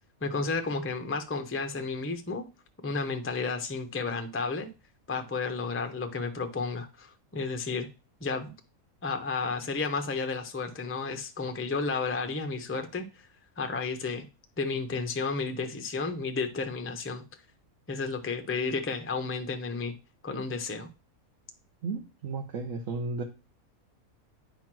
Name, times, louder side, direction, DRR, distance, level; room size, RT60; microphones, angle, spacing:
voice 1, 0.2-2.4 2.8-4.7 5.1-7.9 8.2-8.5 9.0-13.3 13.6-14.3 14.6-17.2 17.9-19.9 20.2-20.9, left 4 dB, 15° left, 6 dB, 0.4 m, -32 dB
voice 2, 21.8-23.2, right 3 dB, 65° right, 3 dB, 1.1 m, -34 dB
9.0 x 3.1 x 5.9 m, 0.30 s
omnidirectional pair, 1.5 m